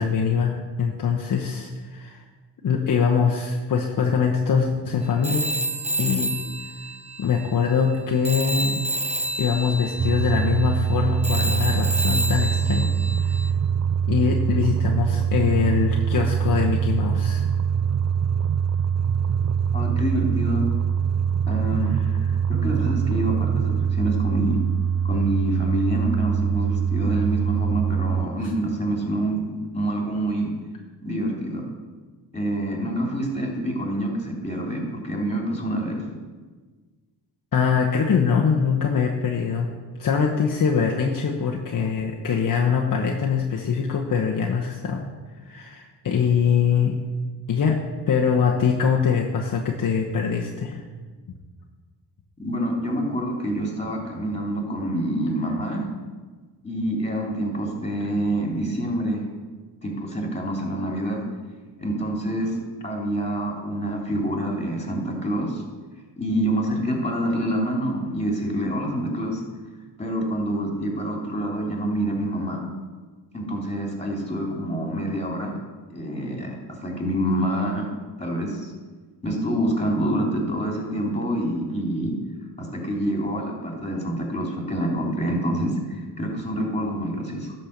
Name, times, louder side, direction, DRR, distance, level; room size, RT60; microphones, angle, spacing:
voice 1, 0.0-2.2 2.6-5.5 6.0-6.4 7.2-8.8 9.4-13.4 14.1-17.4 21.9-22.0 22.3-22.4 27.1-27.2 37.5-39.7 40.0-45.1 45.4-47.0 47.5-47.8 48.1-50.8, left 6 dB, 50° left, 0 dB, 1.1 m, -23 dB
Telephone, 5.2-8.0 8.2-13.5, right 1 dB, 15° right, 1.0 m, -30 dB
sound 1, 10.0-28.3, right 7 dB, 40° right, 0.5 m, -23 dB
voice 2, 19.7-20.6 21.5-21.9 22.5-24.6 25.0-30.5 31.0-31.6 32.3-36.0 52.4-55.8 56.6-59.2 59.8-61.2 61.8-62.6 62.8-65.6 66.2-69.4 70.0-72.6 73.3-75.6 75.9-77.9 78.2-78.7 79.2-82.1 82.6-87.5, right 1 dB, 15° left, 0 dB, 3.2 m, -26 dB
11.5 x 4.4 x 6.7 m, 1.4 s
cardioid pair, 70°, 42 cm